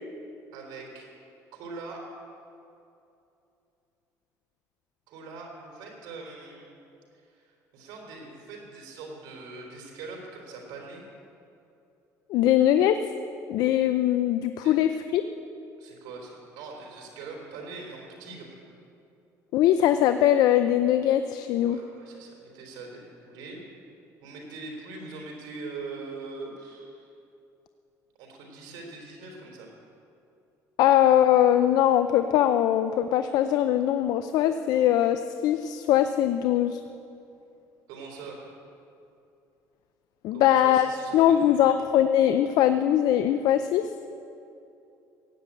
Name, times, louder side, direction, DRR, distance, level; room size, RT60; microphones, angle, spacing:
voice 1, 0.5-1.1 1.5-2.1 5.1-6.7 7.1-11.0 14.6-14.7 15.8-18.6 21.6-23.6 24.2-27.1 28.2-29.7 37.9-38.5 40.3-41.6, right 3 dB, 80° right, 0 dB, 3.8 m, -42 dB
voice 2, 12.3-13.0 13.5-15.2 19.5-21.8 30.8-36.8 40.2-40.9 41.1-43.9, left 11 dB, 70° left, 10 dB, 0.5 m, -21 dB
16.0 x 9.0 x 8.6 m, 2.7 s
cardioid pair, 135°, 7 cm